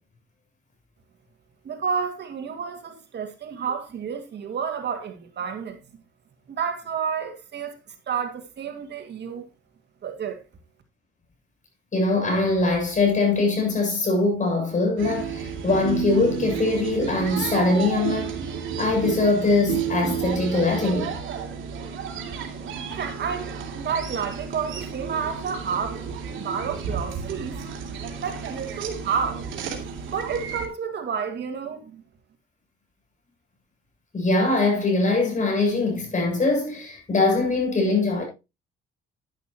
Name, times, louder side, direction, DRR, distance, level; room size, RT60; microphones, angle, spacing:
voice 1, 1.6-5.8 6.5-7.8 8.1-9.5 10.0-10.4 22.9-26.0 26.4-27.6 28.2-29.7 30.1-32.0, right 6 dB, 60° right, 2.2 m, -30 dB
voice 2, 11.9-18.3 18.8-21.2 34.1-38.2, left 3 dB, 40° left, 7.3 m, -22 dB
sound 1, 15.0-30.7, right 7 dB, 80° right, 2.9 m, -32 dB
11.5 x 11.0 x 2.9 m
cardioid pair, 90°, 20 cm